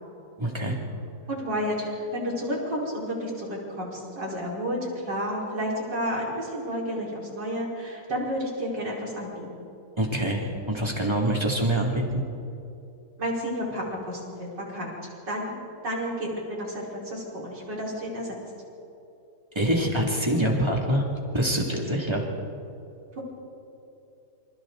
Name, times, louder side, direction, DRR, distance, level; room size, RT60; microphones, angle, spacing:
voice 1, 0.4-0.8 10.0-12.2 19.5-21.1 21.3-22.2, right 1 dB, 15° right, -1 dB, 2.7 m, -25 dB
voice 2, 1.3-9.7 13.2-15.5 15.8-18.4, equal, 80° right, -4 dB, 5.4 m, -31 dB
28.0 x 26.5 x 4.0 m, 2.8 s
omnidirectional pair, 1.9 m